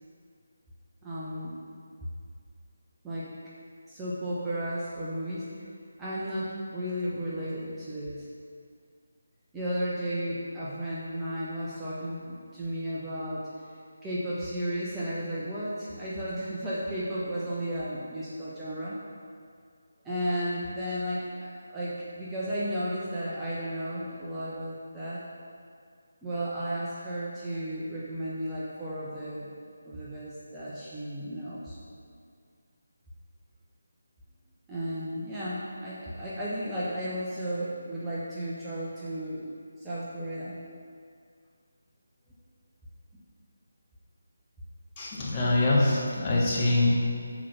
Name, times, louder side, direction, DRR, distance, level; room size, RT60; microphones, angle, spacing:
voice 1, 1.0-1.6 3.0-3.3 3.9-5.5 6.0-8.3 9.5-13.5 14.0-19.0 20.0-25.2 26.2-29.5 29.8-31.8 34.7-39.5 39.8-40.6, equal, 10° right, -10 dB, 0.9 m, -34 dB
voice 2, 45.0-46.9, left 2 dB, 25° left, -6 dB, 1.4 m, -24 dB
6.0 x 4.7 x 5.9 m, 2.2 s
figure-of-eight pair, 155°, 0 cm